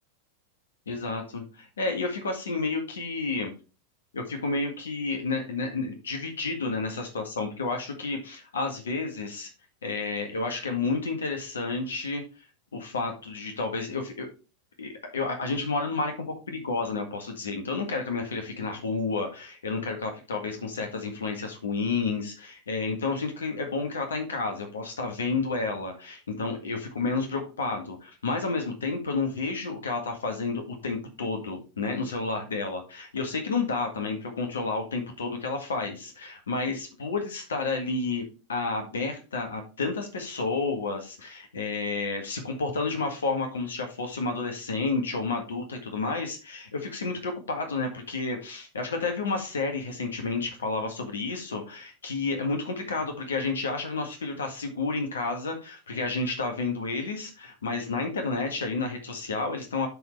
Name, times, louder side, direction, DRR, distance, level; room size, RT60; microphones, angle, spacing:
voice 1, 0.9-3.5 4.1-9.5 9.8-12.2 12.7-14.3 14.8-16.1 16.5-59.9, left 3 dB, 70° left, 4 dB, 1.8 m, -30 dB
12.0 x 4.2 x 3.3 m, 0.32 s
figure-of-eight pair, 90°, 0 cm